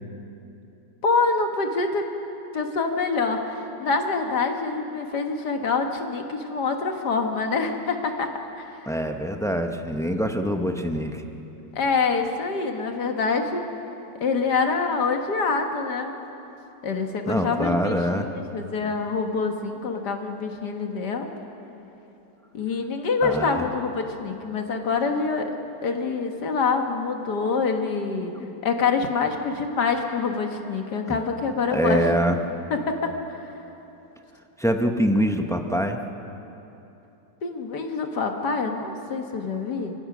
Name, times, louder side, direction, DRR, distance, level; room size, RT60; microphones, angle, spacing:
voice 1, 1.0-2.1 2.5-8.3 8.6-8.9 11.7-13.7 14.2-16.1 16.8-21.3 22.5-25.6 25.8-28.3 28.6-32.0 32.7-33.4 37.4-39.9, left 4 dB, 65° left, 4 dB, 1.9 m, -26 dB
voice 2, 8.9-11.2 17.3-18.3 23.2-23.6 28.4-28.5 31.1-31.2 31.7-32.4 34.6-36.0, equal, 5° left, 5 dB, 0.4 m, -24 dB
27.5 x 16.0 x 6.1 m, 3.0 s
omnidirectional pair, 1.9 m